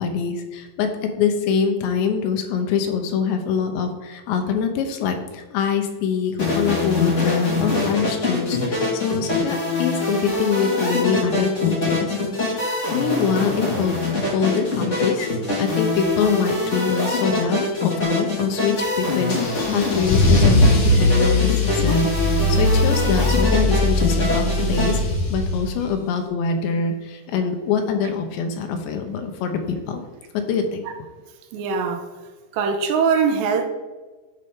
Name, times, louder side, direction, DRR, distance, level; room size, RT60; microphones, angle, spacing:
voice 1, 0.0-12.2 12.4-14.0 14.3-15.3 15.6-25.0 25.3-30.0 30.3-30.9, left 6 dB, 85° left, 3.1 m, -24 dB
sound 1, 6.4-25.0, left 3 dB, 35° left, 1.2 m, -24 dB
Car / Engine starting / Accelerating revving vroom, 19.3-25.8, left 1 dB, 65° left, 4.4 m, -20 dB
voice 2, 31.5-32.1 32.5-33.7, right 5 dB, 85° right, 3.0 m, -21 dB
12.5 x 5.3 x 3.7 m
omnidirectional pair, 5.0 m